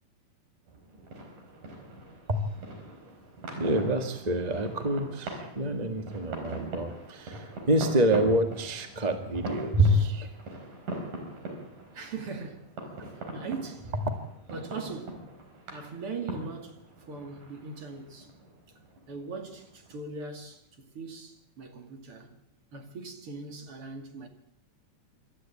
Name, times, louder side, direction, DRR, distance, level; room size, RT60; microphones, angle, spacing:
sound 1, 0.7-20.0, right 2 dB, 90° right, 6.3 m, -42 dB
voice 1, 3.5-10.3 13.0-13.1, right 1 dB, 20° right, 1.0 m, -27 dB
voice 2, 11.9-12.8 13.3-13.9 14.5-15.2 15.7-16.8 17.1-18.3 19.1-22.4 22.7-24.3, right 4 dB, 45° right, 3.2 m, -40 dB
26.5 x 13.0 x 8.6 m
omnidirectional pair, 3.6 m